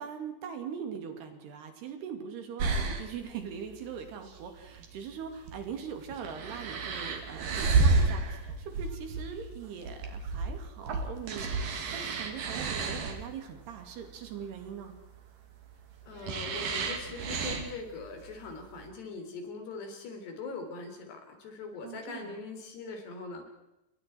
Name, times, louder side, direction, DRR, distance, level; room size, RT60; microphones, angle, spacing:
voice 1, 0.0-14.9 21.8-22.3, right 7 dB, 75° right, 6 dB, 4.5 m, -41 dB
sound 1, 2.6-18.8, right 3 dB, 60° right, 3.8 m, -32 dB
voice 2, 16.1-23.5, left 4 dB, 80° left, 4 dB, 5.6 m, -41 dB
28.0 x 22.5 x 4.6 m, 0.92 s
omnidirectional pair, 4.7 m